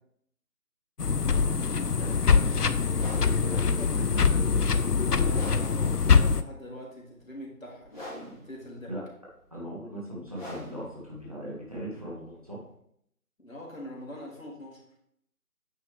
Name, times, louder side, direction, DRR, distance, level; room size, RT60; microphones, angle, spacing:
sound 1, 1.0-6.4, left 5 dB, 90° left, 0.8 m, -24 dB
voice 1, 1.3-1.6 1.9-2.1 3.4-3.9 4.3-4.4 4.7-4.8 8.9-9.0 9.5-12.7, equal, 25° right, -6 dB, 1.8 m, -39 dB
voice 2, 2.0-2.8 3.8-3.9 5.1-8.1 8.4-8.9 13.4-14.8, left 1 dB, 60° left, -2 dB, 3.0 m, -43 dB
sound 2, 2.9-12.7, equal, 30° left, 3.7 m, -45 dB
9.3 x 6.4 x 3.4 m, 0.70 s
figure-of-eight pair, 175°, 45 cm